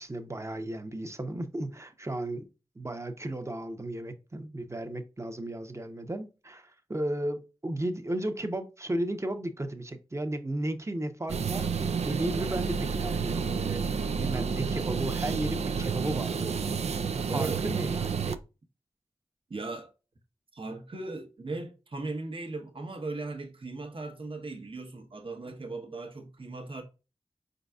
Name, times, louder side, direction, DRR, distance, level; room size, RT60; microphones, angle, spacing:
voice 1, 0.0-2.5 2.8-16.8 17.1-18.4, right 1 dB, 25° right, 0.8 m, -34 dB
sound 1, 11.3-18.4, right 6 dB, 80° right, 0.4 m, -30 dB
voice 2, 17.3-17.7 19.5-19.9 20.5-26.8, right 3 dB, 55° right, 1.0 m, -38 dB
4.6 x 3.9 x 2.3 m
cardioid pair, 40°, 11 cm